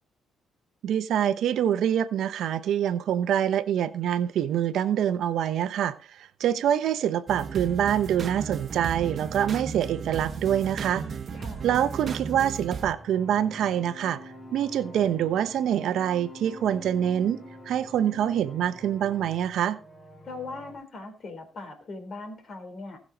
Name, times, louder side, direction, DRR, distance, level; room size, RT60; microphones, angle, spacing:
voice 1, 0.8-11.0 11.6-14.2 14.5-19.8, right 10 dB, 75° right, 0.9 m, -25 dB
sound 1, 7.3-12.9, right 6 dB, 45° right, 1.3 m, -35 dB
voice 2, 11.3-11.7 20.2-23.0, left 3 dB, 50° left, 3.8 m, -40 dB
sound 2, 12.3-20.7, equal, 20° left, 6.0 m, -45 dB
19.0 x 6.4 x 4.0 m
cardioid pair, 90°, 0 cm